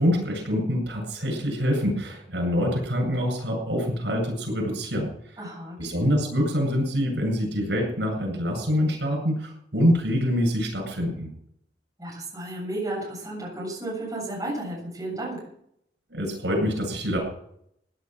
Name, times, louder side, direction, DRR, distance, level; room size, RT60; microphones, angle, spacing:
voice 1, 0.0-5.4 5.8-11.3 16.1-17.2, equal, 90° right, 2 dB, 8.0 m, -25 dB
voice 2, 5.4-6.1 12.0-15.4, right 1 dB, 20° right, -4 dB, 7.8 m, -33 dB
17.0 x 10.0 x 6.2 m, 0.72 s
head